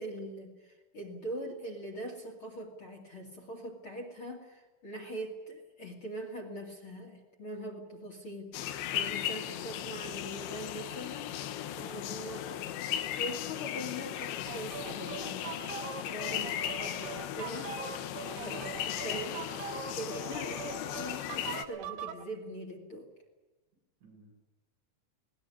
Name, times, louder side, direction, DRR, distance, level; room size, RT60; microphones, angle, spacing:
voice 1, 0.0-15.5 16.0-17.9 18.4-23.1, equal, 35° left, 1 dB, 2.6 m, -42 dB
sound 1, 8.5-21.7, left 11 dB, 80° left, 3.4 m, -37 dB
sound 2, 14.5-22.2, right 9 dB, 65° right, 2.8 m, -42 dB
voice 2, 18.3-19.0 24.0-24.3, right 3 dB, 85° right, -1 dB, 10.0 m, -53 dB
20.0 x 19.5 x 9.9 m, 1.2 s
omnidirectional pair, 5.2 m